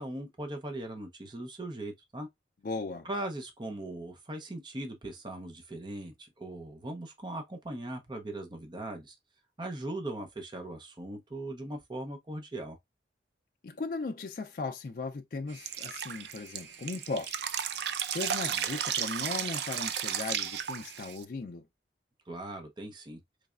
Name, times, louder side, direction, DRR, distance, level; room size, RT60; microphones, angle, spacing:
voice 1, 0.0-2.3 3.0-9.1 9.6-12.8 22.3-23.2, right 1 dB, 25° right, 0.6 m, -39 dB
voice 2, 2.6-3.1 13.6-17.6 18.1-21.7, left 3 dB, 50° left, 0.4 m, -37 dB
sound 1, 15.5-21.2, right 6 dB, 90° right, 0.9 m, -52 dB
Drip, 15.7-21.2, right 9 dB, 65° right, 0.4 m, -33 dB
4.0 x 3.2 x 2.4 m
head